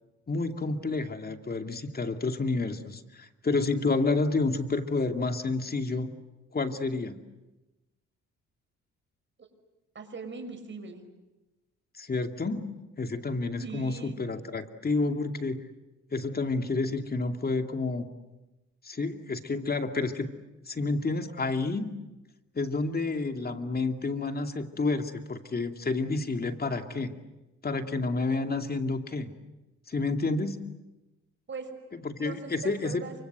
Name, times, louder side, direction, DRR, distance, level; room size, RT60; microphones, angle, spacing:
voice 1, 0.3-6.1 6.5-7.2 12.0-15.6 16.1-18.1 18.8-20.3 20.7-21.9 22.5-27.1 27.6-29.3 29.9-30.6 31.9-33.0, left 3 dB, 30° left, 6 dB, 2.4 m, -30 dB
voice 2, 9.9-11.1 13.6-14.2 31.5-31.7 32.2-33.1, right 4 dB, 40° right, 6 dB, 6.1 m, -40 dB
28.5 x 25.0 x 8.0 m, 1.0 s
cardioid pair, 90°, 30 cm